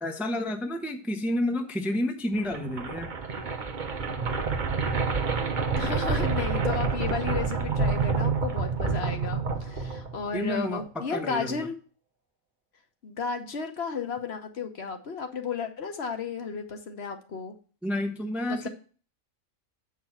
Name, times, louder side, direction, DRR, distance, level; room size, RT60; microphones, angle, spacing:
voice 1, 0.0-3.1 10.3-11.7 17.8-18.7, left 1 dB, ahead, 5 dB, 0.6 m, -30 dB
sound 1, 2.4-10.4, right 4 dB, 40° right, 0.9 m, -28 dB
voice 2, 5.8-11.7 13.0-17.6 18.5-18.7, left 5 dB, 55° left, 5 dB, 1.1 m, -33 dB
7.6 x 4.8 x 5.8 m, 0.39 s
omnidirectional pair, 1.4 m